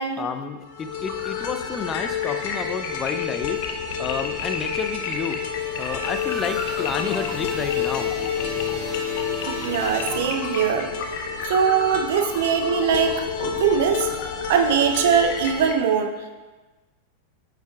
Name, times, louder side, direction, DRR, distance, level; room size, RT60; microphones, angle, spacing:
voice 1, 0.2-3.6 4.0-5.4 5.8-8.1, left 6 dB, 25° left, 8 dB, 0.4 m, -30 dB
sound 1, 0.7-15.7, left 7 dB, 50° left, 0.7 m, -29 dB
sound 2, 5.2-10.8, right 1 dB, ahead, 2.0 m, -37 dB
voice 2, 9.5-10.9 11.5-14.1 14.5-16.3, right 7 dB, 55° right, 5 dB, 0.7 m, -22 dB
8.8 x 5.7 x 2.3 m, 1.2 s
figure-of-eight pair, 90°, 0 cm